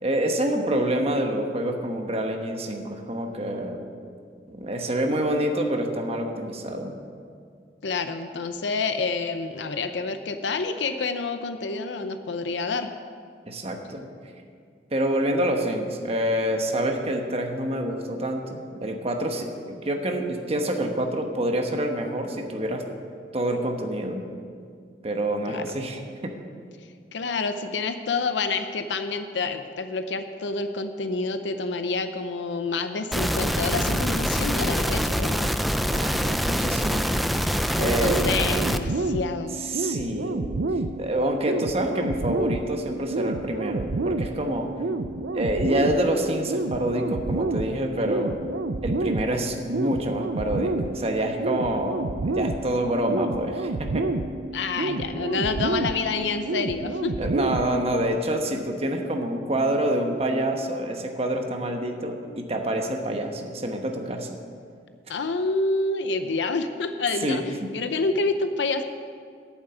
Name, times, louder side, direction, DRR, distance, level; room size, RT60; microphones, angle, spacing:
voice 1, 0.0-3.8 4.5-7.0 13.5-14.1 14.9-22.9 23.3-24.2 25.0-26.4 35.9-37.1 37.8-38.3 39.6-40.5 41.0-44.7 45.3-48.3 48.8-54.1 57.2-64.3 67.2-67.7, right 1 dB, 35° right, 3 dB, 1.1 m, -27 dB
voice 2, 7.8-12.9 25.5-25.6 27.1-35.5 37.8-39.5 54.5-57.3 65.1-67.4 67.7-68.8, left 3 dB, 85° left, 9 dB, 0.6 m, -28 dB
sound 1, 33.1-38.8, equal, ahead, 0.4 m, -25 dB
sound 2, 38.1-58.1, right 2 dB, 75° right, 0.5 m, -29 dB
8.9 x 7.4 x 9.1 m, 2.2 s
head